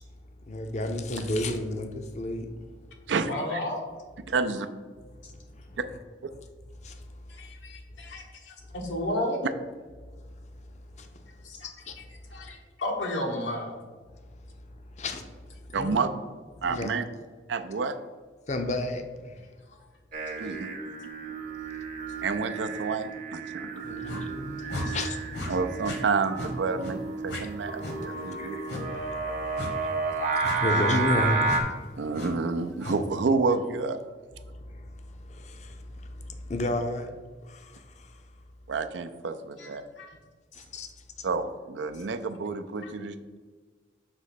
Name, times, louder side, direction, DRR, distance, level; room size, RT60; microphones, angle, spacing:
voice 1, 0.4-2.7 5.0-5.1 5.5-5.8 6.8-7.2 8.0-8.2 10.1-10.5 10.9-12.0 12.4-12.6 15.0-15.3 15.7-16.0 16.7-16.9 18.5-19.4 23.8-25.5 28.4-32.1 34.4-37.1 37.4-38.2 40.5-40.9 41.2-41.3, left 1 dB, 40° left, 6 dB, 0.5 m, -33 dB
voice 2, 3.3-3.9 5.2-5.3 7.3-9.4 11.4-11.7 12.0-12.1 12.3-13.8 19.7-19.8 20.4-20.5 24.8-25.0 39.6-40.1 40.5-40.6 42.8-42.9, left 1 dB, 90° left, 1 dB, 1.2 m, -33 dB
voice 3, 4.3-4.7 15.7-16.1 16.6-17.0 17.5-18.0 20.4-20.9 22.2-24.0 25.5-28.6 32.0-34.0 38.7-39.8 41.2-43.4, right 4 dB, 80° right, 9 dB, 0.4 m, -29 dB
Singing, 20.1-31.6, right 3 dB, 40° right, 0.7 m, -32 dB
sound 1, 24.0-24.2 24.7-24.9 25.3-25.5 25.8-26.0 26.3-26.5 26.8-27.0 27.3-27.4 27.8-28.0 28.7-28.8 29.6-29.7 30.4-30.6 31.4-31.6 32.1-32.3 32.8-33.0, left 2 dB, 65° left, 1.1 m, -35 dB
6.2 x 3.1 x 5.7 m, 1.4 s
head